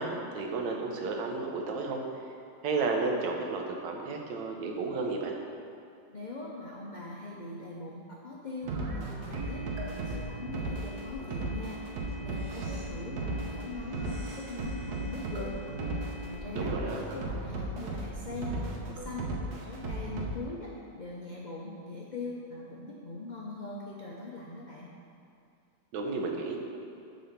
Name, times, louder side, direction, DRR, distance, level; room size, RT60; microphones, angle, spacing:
voice 1, 0.0-2.0 2.6-5.3 16.5-17.0 25.9-26.6, right 3 dB, 80° right, 1 dB, 1.5 m, -32 dB
voice 2, 6.1-15.6 16.2-24.9, left 2 dB, 85° left, -3 dB, 0.4 m, -41 dB
sound 1, 8.6-20.4, right 2 dB, 65° right, 1.4 m, -36 dB
7.7 x 4.1 x 6.7 m, 2.5 s
omnidirectional pair, 1.9 m